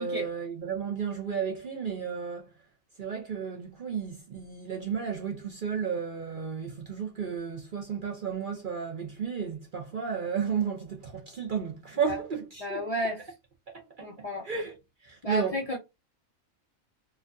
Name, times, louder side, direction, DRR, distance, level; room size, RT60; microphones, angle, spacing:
voice 1, 0.0-2.5 3.0-12.8 13.7-14.1 14.4-14.7 15.0-15.6, right 6 dB, 50° right, 0.7 m, -33 dB
voice 2, 12.6-13.3 14.0-14.5 15.2-15.8, left 1 dB, 40° left, 0.6 m, -32 dB
4.4 x 2.3 x 2.6 m
omnidirectional pair, 1.4 m